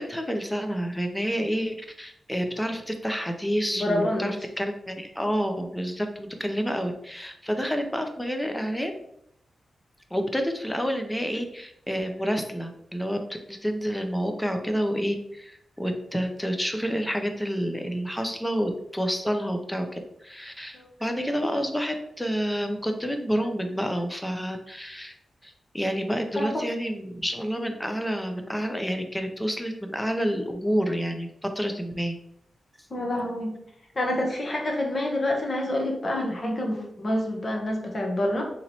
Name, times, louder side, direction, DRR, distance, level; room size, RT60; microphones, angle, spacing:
voice 1, 0.0-8.9 10.1-13.2 13.5-25.1 25.4-32.2, equal, 5° left, 5 dB, 0.4 m, -29 dB
voice 2, 3.7-4.3 20.7-20.9 26.4-26.6 32.9-33.5 34.0-38.4, left 1 dB, 35° left, 1 dB, 0.8 m, -27 dB
2.9 x 2.9 x 3.9 m, 0.74 s
wide cardioid pair, 160°, 0 cm